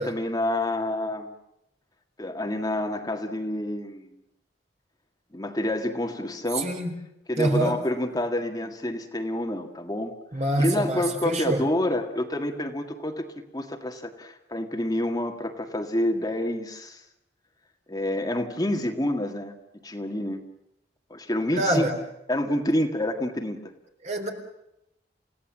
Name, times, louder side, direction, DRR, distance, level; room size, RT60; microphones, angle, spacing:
voice 1, 0.0-1.3 2.2-4.1 5.3-6.7 7.3-10.1 10.6-13.3 13.5-17.0 17.9-19.5 19.8-20.4 21.1-21.9 22.3-23.6, left 1 dB, 20° left, 4 dB, 1.8 m, -28 dB
voice 2, 6.5-6.9 7.4-7.8 10.3-11.6 21.5-21.9 24.0-24.3, right 1 dB, 40° right, 4 dB, 4.0 m, -25 dB
29.5 x 17.0 x 7.4 m, 0.83 s
head